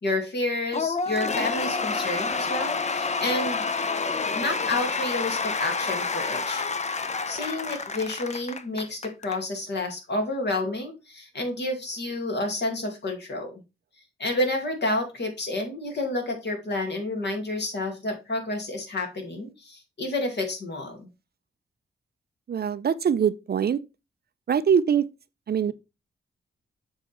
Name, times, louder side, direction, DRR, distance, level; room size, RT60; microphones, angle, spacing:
voice 1, 0.0-3.6 4.3-6.6 7.3-13.6 14.2-21.1, left 2 dB, 55° left, 2.4 m, -30 dB
Cheering / Applause / Crowd, 0.7-9.4, left 4 dB, 35° left, 0.7 m, -28 dB
voice 2, 22.5-23.8 24.5-25.1 25.5-25.7, right 7 dB, 50° right, 0.5 m, -23 dB
7.1 x 3.7 x 4.3 m
cardioid pair, 80°, 21 cm